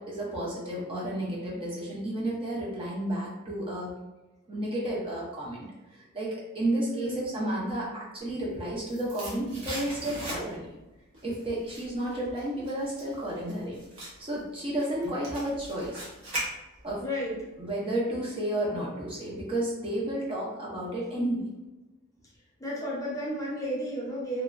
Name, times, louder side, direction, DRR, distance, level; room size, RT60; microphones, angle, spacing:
voice 1, 0.0-3.9 4.5-10.7 11.2-16.1 16.8-17.0 17.6-21.5, right 1 dB, 25° right, -5 dB, 0.5 m, -32 dB
voice 2, 6.9-7.3 17.0-17.4 22.3-24.4, equal, 15° left, -5 dB, 0.7 m, -33 dB
sound 1, 8.4-10.8 11.1-17.0 17.3-17.4, right 1 dB, 75° right, 1.0 m, -40 dB
2.9 x 2.2 x 2.4 m, 1.1 s
head